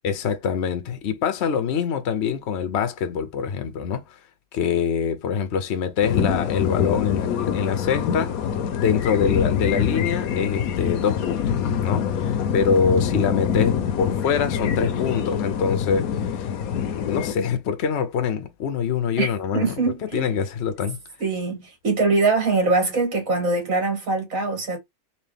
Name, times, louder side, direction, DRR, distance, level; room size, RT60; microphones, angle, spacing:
voice 1, 0.0-4.0 4.5-8.4 8.8-16.5 16.8-19.7 20.1-21.0, left 6 dB, 55° left, 0.9 m, -25 dB
sound 1, 6.0-17.3, left 8 dB, 80° left, 1.2 m, -25 dB
voice 2, 19.2-20.3 21.2-24.8, right 3 dB, 65° right, 2.2 m, -23 dB
4.0 x 2.6 x 3.4 m
omnidirectional pair, 1.5 m